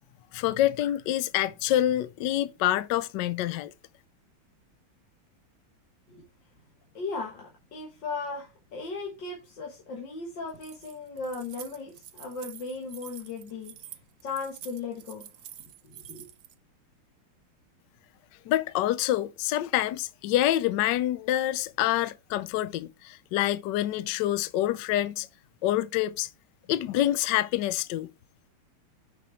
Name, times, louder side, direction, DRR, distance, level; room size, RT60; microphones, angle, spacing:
voice 1, 0.3-3.7 18.5-25.3 25.6-26.3 26.7-28.1, left 13 dB, 75° left, 1.0 m, -26 dB
voice 2, 6.9-13.7 14.2-15.3 15.8-16.3, left 4 dB, 55° left, 2.1 m, -37 dB
Keys jangling, 10.5-16.5, right 11 dB, 80° right, 0.8 m, -47 dB
6.4 x 5.5 x 4.4 m
omnidirectional pair, 2.4 m